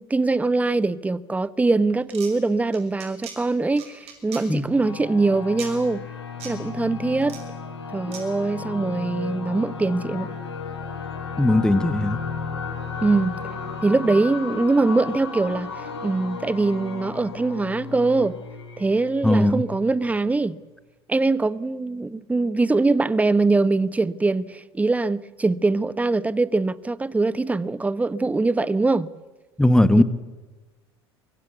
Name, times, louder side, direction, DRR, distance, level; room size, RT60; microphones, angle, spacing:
voice 1, 0.0-6.0 6.4-7.4 7.9-10.4 13.0-18.4 18.8-20.6 21.1-29.1 30.0-30.1, right 3 dB, 10° right, 0.9 m, -23 dB
sound 1, 2.0-2.3 2.7-3.4 3.8-4.4 5.6-5.7 6.4-6.5 7.2-7.4 8.1-8.2, right 8 dB, 45° right, 5.6 m, -38 dB
sound 2, 4.7-20.0, left 5 dB, 80° left, 3.9 m, -34 dB
voice 2, 11.4-12.2 19.2-19.6 29.6-30.0, left 1 dB, 5° left, 1.2 m, -18 dB
23.5 x 23.0 x 8.1 m
figure-of-eight pair, 75°, 14 cm